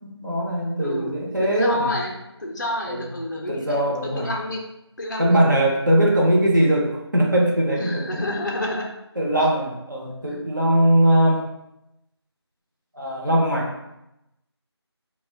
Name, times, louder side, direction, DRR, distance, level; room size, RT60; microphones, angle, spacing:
voice 1, 0.0-1.9 2.9-3.1 3.5-4.3 5.2-8.2 9.2-11.5 12.9-13.7, right 1 dB, 45° right, -2 dB, 0.6 m, -20 dB
voice 2, 0.8-2.1 2.4-4.7 5.0-5.4 7.8-8.9, left 1 dB, 45° left, 0 dB, 0.4 m, -29 dB
2.4 x 2.1 x 3.3 m, 0.87 s
figure-of-eight pair, 175°, 14 cm